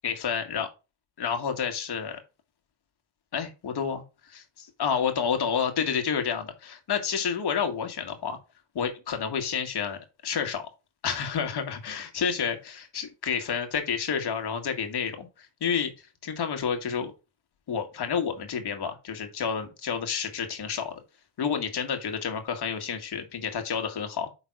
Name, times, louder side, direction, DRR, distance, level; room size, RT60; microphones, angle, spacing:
voice 1, 0.0-0.7 1.2-2.2 3.3-8.4 8.8-10.6 11.0-15.9 16.2-17.1 17.7-20.9 21.4-24.3, left 7 dB, 50° left, 1.9 m, -30 dB
5.5 x 4.0 x 6.0 m
cardioid pair, 105°, 49 cm